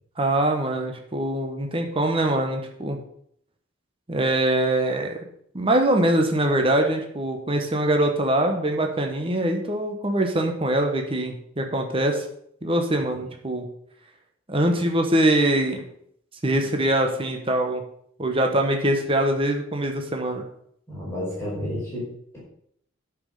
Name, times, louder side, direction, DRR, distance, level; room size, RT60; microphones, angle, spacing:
voice 1, 0.2-3.0 4.1-5.2 5.5-12.2 12.6-13.7 14.5-15.8 16.4-17.8 18.2-20.4, right 1 dB, 25° right, 3 dB, 1.2 m, -23 dB
voice 2, 20.9-22.4, left 1 dB, 10° left, -8 dB, 4.8 m, -32 dB
9.8 x 6.2 x 6.6 m, 0.68 s
head